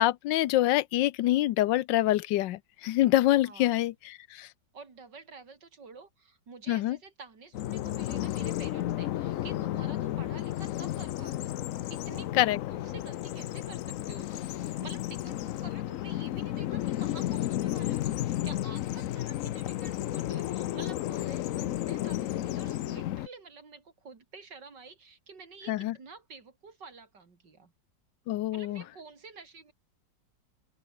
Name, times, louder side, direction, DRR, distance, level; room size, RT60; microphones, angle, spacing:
voice 1, 0.0-4.5 6.7-7.0 12.4-12.6 25.7-25.9 28.3-28.8, left 15 dB, 90° left, 1.4 m, -26 dB
voice 2, 3.4-3.8 4.7-11.6 11.9-27.7 28.5-29.7, right 4 dB, 75° right, 3.8 m, -49 dB
Bird vocalization bird call bird song, 7.5-23.3, left 13 dB, 70° left, 0.8 m, -33 dB
open air
omnidirectional pair, 1.9 m